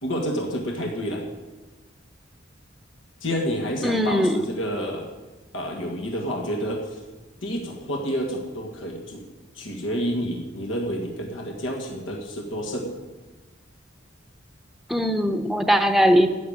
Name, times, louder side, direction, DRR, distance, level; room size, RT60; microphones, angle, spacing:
voice 1, 0.0-1.2 3.2-5.1 5.5-7.0 7.4-9.2 9.5-12.9, equal, 90° left, 1 dB, 1.8 m, -29 dB
voice 2, 3.8-4.4 14.9-16.3, equal, ahead, 7 dB, 0.7 m, -20 dB
11.5 x 6.8 x 8.8 m, 1.2 s
head